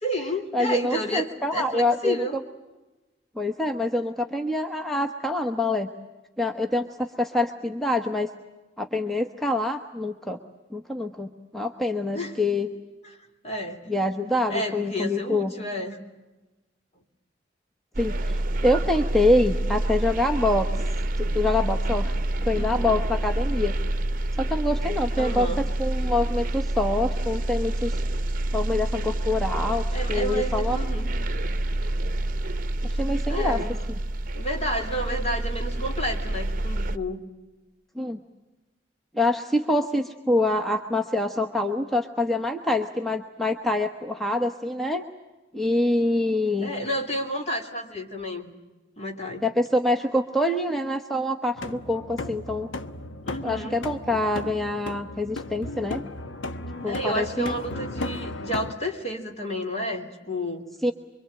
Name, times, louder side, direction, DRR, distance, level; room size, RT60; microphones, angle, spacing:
voice 1, 0.0-2.4 12.1-12.4 13.4-13.8 14.5-16.0 22.5-22.9 25.2-25.6 29.9-31.1 31.8-32.0 33.3-33.8 34.3-37.2 46.6-48.5 49.0-49.4 53.2-53.8 54.1-54.2 56.9-60.7, equal, 35° left, 3 dB, 3.4 m, -31 dB
voice 2, 0.5-2.2 3.4-5.9 6.4-8.3 8.8-10.4 10.7-12.7 13.9-15.5 18.0-20.7 21.2-22.1 22.4-23.7 24.4-28.0 28.5-29.8 30.1-30.8 32.8-33.6 38.0-38.2 39.1-45.0 45.5-46.7 49.4-52.7 53.4-56.0 56.8-57.5 60.8-60.9, left 1 dB, ahead, 4 dB, 1.0 m, -25 dB
sound 1, 17.9-37.0, right 1 dB, 50° right, 0.9 m, -27 dB
sound 2, 51.6-58.8, left 2 dB, 80° left, 1.1 m, -35 dB
25.0 x 24.0 x 8.9 m, 1.1 s
head